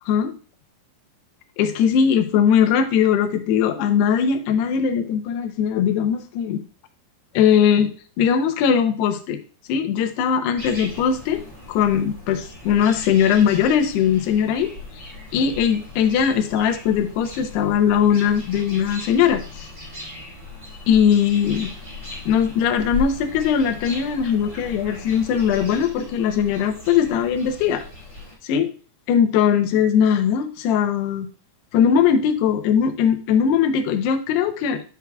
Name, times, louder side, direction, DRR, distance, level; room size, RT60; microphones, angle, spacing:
voice 1, 0.1-0.4 1.6-6.6 7.3-7.9 8.2-9.4 9.7-11.4 11.7-14.7 15.0-15.1 15.3-19.4 20.9-21.7 22.3-27.8 28.4-28.7 29.1-31.3 31.7-34.8, left 8 dB, 90° left, 7 dB, 2.9 m, -20 dB
sound 1, 10.6-28.3, left 3 dB, 10° right, 2.3 m, -37 dB
9.9 x 6.0 x 2.3 m, 0.38 s
omnidirectional pair, 4.6 m